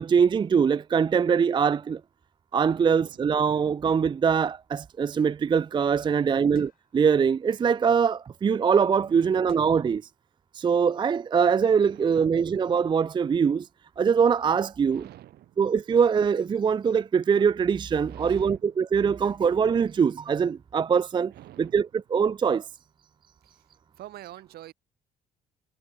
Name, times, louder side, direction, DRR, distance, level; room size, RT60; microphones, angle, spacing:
voice 1, 0.0-2.0 2.5-10.0 10.5-13.7 14.0-15.0 15.6-21.3 21.6-22.7, right 6 dB, 25° right, 0.5 m, -23 dB
voice 2, 2.7-3.2 6.0-6.5 9.0-9.6 11.8-12.5 14.8-15.6 18.0-18.8 21.2-21.8 23.4-23.7 24.0-24.7, right 14 dB, 70° right, 3.0 m, -48 dB
sound 1, 6.5-7.1 8.3-8.5 9.5-9.9 10.9-11.2, left 10 dB, 60° left, 7.7 m, -60 dB
cardioid pair, 110°, 17 cm